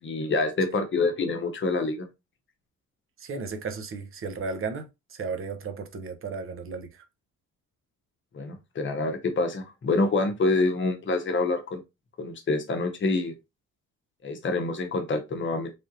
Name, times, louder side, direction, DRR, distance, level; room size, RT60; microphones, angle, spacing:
voice 1, 0.0-2.1 8.3-11.8 12.2-13.3 14.2-15.7, left 3 dB, 40° left, 0.9 m, -26 dB
voice 2, 3.2-7.0, right 4 dB, 45° right, 0.8 m, -35 dB
3.4 x 2.6 x 2.6 m
cardioid pair, 90°, 30 cm